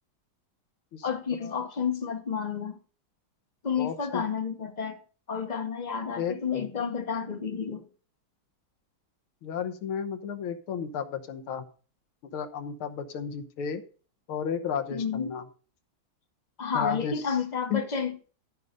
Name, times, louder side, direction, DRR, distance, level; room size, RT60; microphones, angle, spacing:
voice 1, 1.0-2.8 3.6-5.0 5.3-7.8 14.9-15.4 16.6-18.2, left 6 dB, 35° left, 0.7 m, -30 dB
voice 2, 3.8-4.2 6.2-6.4 9.4-11.6 12.2-13.8 14.3-15.4 16.7-17.4 17.7-17.9, left 7 dB, 80° left, 1.9 m, -33 dB
13.5 x 5.4 x 5.2 m
omnidirectional pair, 2.3 m